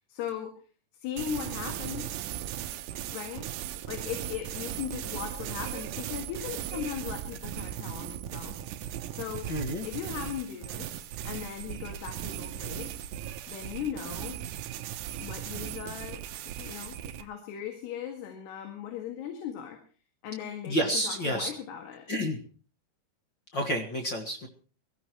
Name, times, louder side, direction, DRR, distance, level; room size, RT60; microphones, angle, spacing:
voice 1, 0.1-0.5 1.0-2.2 3.1-3.5 3.9-8.7 9.1-9.5 9.8-13.0 13.5-14.4 15.2-16.2 16.6-19.8 20.2-22.1, left 9 dB, 85° left, 3 dB, 4.2 m, -38 dB
sound 1, 1.2-17.2, right 11 dB, 80° right, 1.8 m, -37 dB
voice 2, 9.5-9.9 20.7-21.5 22.1-22.4 23.5-24.5, equal, 45° left, 3 dB, 1.5 m, -29 dB
22.5 x 15.0 x 3.1 m, 0.40 s
omnidirectional pair, 4.6 m